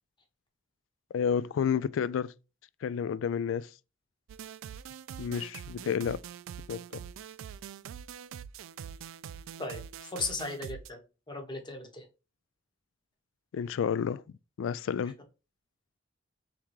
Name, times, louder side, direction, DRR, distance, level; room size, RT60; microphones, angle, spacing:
voice 1, 1.1-2.3 2.8-3.7 5.2-6.2 6.7-7.0 13.5-14.2 14.6-15.1, left 7 dB, 75° left, 0.3 m, -30 dB
SQ Future Sonic, 4.3-10.9, right 8 dB, 80° right, 0.3 m, -44 dB
voice 2, 9.6-11.0 11.3-12.0, left 3 dB, 25° left, 1.0 m, -37 dB
3.6 x 2.9 x 4.5 m
head